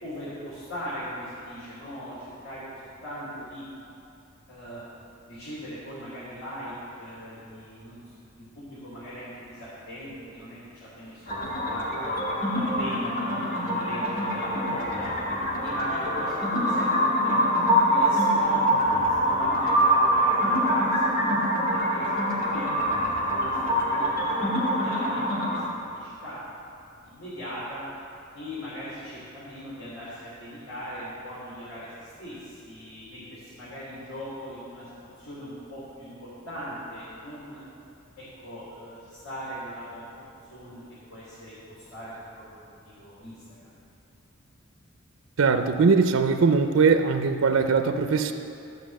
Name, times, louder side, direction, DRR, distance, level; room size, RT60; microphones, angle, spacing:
voice 1, 0.0-3.6 4.5-4.8 5.3-8.0 8.4-12.2 12.5-15.1 15.6-21.3 21.7-26.4 27.0-27.8 28.3-37.6 38.2-40.8 41.1-42.6 42.8-43.7, equal, 85° left, -10 dB, 3.1 m, -40 dB
sound 1, 11.3-25.6, equal, 45° left, 2.3 m, -24 dB
voice 2, 45.4-48.3, right 5 dB, 80° right, 7 dB, 0.6 m, -21 dB
13.5 x 5.5 x 7.6 m, 2.7 s
head